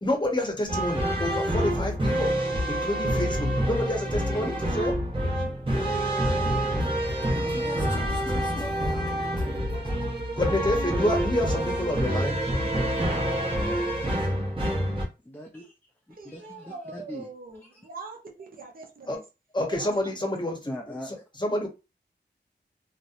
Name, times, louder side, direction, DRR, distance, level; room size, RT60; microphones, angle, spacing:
voice 1, 0.0-2.3 2.7-5.0 6.4-12.4 19.1-19.2 19.5-21.7, left 1 dB, 25° left, 0.8 m, -30 dB
sound 1, 0.7-15.0, equal, 30° right, 0.9 m, -27 dB
voice 2, 13.0-13.3 15.3-15.7 16.3-17.2 20.7-21.1, left 1 dB, 10° left, 0.4 m, -41 dB
voice 3, 16.1-19.2 19.7-20.6, right 3 dB, 55° right, 0.6 m, -43 dB
2.7 x 2.1 x 2.5 m
wide cardioid pair, 70°, 18 cm